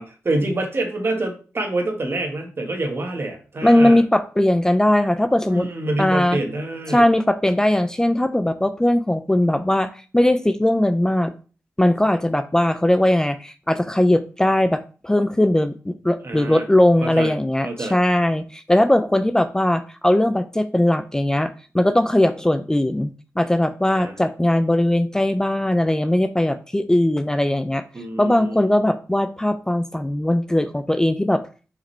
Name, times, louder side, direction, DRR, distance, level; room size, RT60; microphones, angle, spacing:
voice 1, 0.0-4.0 5.4-7.1 16.2-16.7 17.0-17.3 17.6-18.0 23.9-24.1 27.9-28.7, right 2 dB, 45° right, 3 dB, 1.5 m, -26 dB
voice 2, 3.6-5.7 6.0-6.4 6.9-11.3 11.8-23.1 23.4-27.8 28.2-31.4, left 1 dB, 10° left, 10 dB, 0.4 m, -19 dB
5.7 x 5.1 x 3.3 m, 0.37 s
cardioid pair, 80°, 5 cm